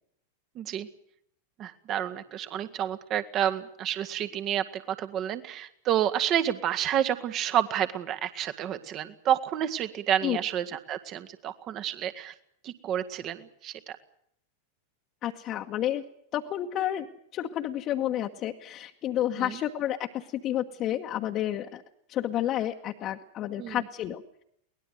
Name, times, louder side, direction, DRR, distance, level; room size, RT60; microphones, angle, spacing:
voice 1, 0.6-0.9 1.6-12.3 12.6-14.0 19.4-19.6 23.6-23.8, right 10 dB, 35° right, 10 dB, 1.9 m, -29 dB
voice 2, 15.2-16.0 16.3-17.1 17.3-21.8 22.1-24.2, left 12 dB, 35° left, 2 dB, 1.4 m, -30 dB
23.0 x 19.5 x 7.9 m, 0.72 s
figure-of-eight pair, 90°, 0 cm